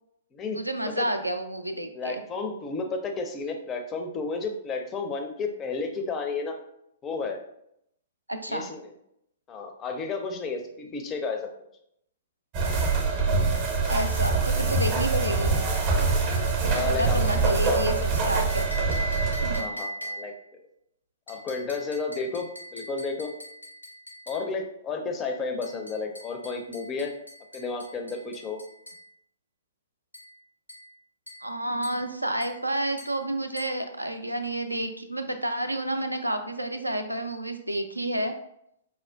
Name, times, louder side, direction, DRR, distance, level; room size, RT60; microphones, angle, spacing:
voice 1, 0.5-2.2 8.3-8.7 13.9-15.5 16.6-19.1 19.4-19.7 31.4-38.3, right 1 dB, 85° right, 7 dB, 0.3 m, -30 dB
voice 2, 1.9-6.6 7.0-7.4 8.5-8.9 9.5-11.5 16.6-17.2 19.5-20.3 21.3-23.3 24.3-27.1 27.5-28.6, left 4 dB, 20° left, 4 dB, 0.4 m, -32 dB
sound 1, 12.5-19.6, right 4 dB, 30° right, 0.6 m, -24 dB
sound 2, 18.5-20.5 21.3-24.5 25.6-29.1 30.1-30.4 30.7-30.9 31.3-31.5 31.8-32.1 32.4-32.6 33.0-33.2 33.6-33.8, equal, 90° left, 0.7 m, -40 dB
4.2 x 2.2 x 2.2 m, 0.76 s
figure-of-eight pair, 115°, 0 cm